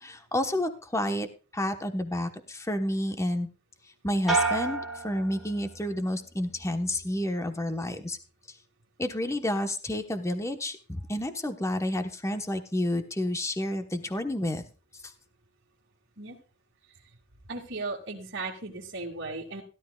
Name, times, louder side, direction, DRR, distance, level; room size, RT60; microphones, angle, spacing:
voice 1, 0.0-3.5 4.0-8.2 9.0-14.6 15.0-15.1, left 1 dB, 15° left, 7 dB, 1.1 m, -30 dB
sound 1, 4.3-6.0 6.4-7.0, right 3 dB, ahead, 2.4 m, -31 dB
voice 2, 17.5-19.6, right 3 dB, 60° right, -3 dB, 2.4 m, -36 dB
16.5 x 12.0 x 2.4 m, 0.34 s
head